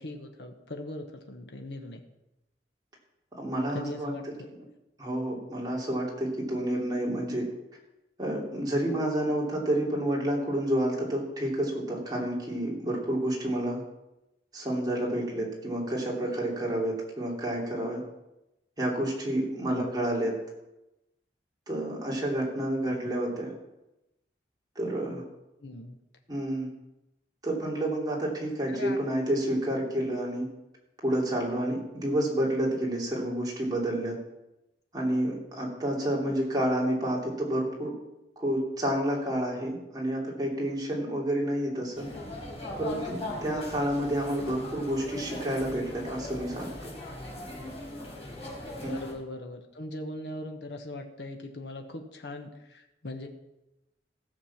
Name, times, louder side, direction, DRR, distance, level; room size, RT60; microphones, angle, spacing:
voice 1, 0.0-2.0 3.7-4.5 19.7-19.9 23.0-23.1 25.6-26.0 28.7-29.0 36.0-36.3 48.8-53.3, left 1 dB, 70° left, 4 dB, 1.2 m, -40 dB
voice 2, 3.4-4.1 5.0-7.4 8.2-13.8 14.5-18.0 18.8-20.3 21.7-23.5 24.7-25.2 26.3-26.7 27.4-30.5 31.0-34.2 34.9-37.9 38.4-42.1 42.8-46.7 48.8-48.9, right 1 dB, 25° right, -3 dB, 2.9 m, -29 dB
sound 1, 41.9-49.1, left 1 dB, 35° left, 4.2 m, -39 dB
16.0 x 6.7 x 5.9 m, 0.94 s
head